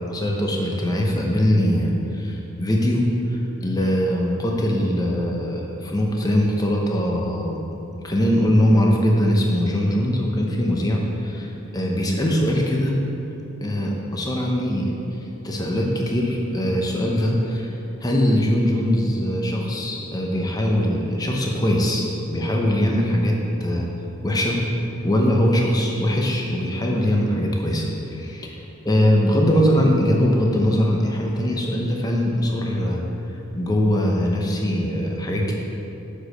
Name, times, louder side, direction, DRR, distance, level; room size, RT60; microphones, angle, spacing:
voice 1, 0.1-7.6 8.0-13.0 13.6-15.2 15.4-17.7 18.0-23.9 24.2-24.6 25.0-28.6 28.8-33.0 33.5-35.5, equal, 20° left, -1 dB, 0.8 m, -21 dB
6.3 x 5.1 x 6.5 m, 2.9 s
head